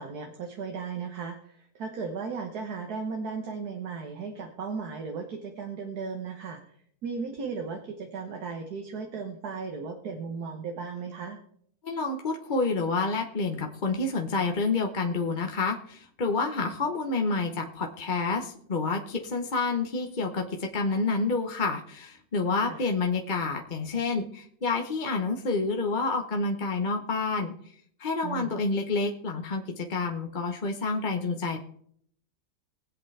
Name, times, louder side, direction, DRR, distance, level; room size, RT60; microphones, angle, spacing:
voice 1, 0.0-6.6 7.0-11.4 22.6-22.8 28.2-28.6, right 5 dB, 65° right, 3 dB, 1.7 m, -36 dB
voice 2, 11.8-27.5 28.0-31.6, left 3 dB, 35° left, 2 dB, 1.0 m, -28 dB
21.0 x 8.1 x 3.3 m, 0.63 s
omnidirectional pair, 1.8 m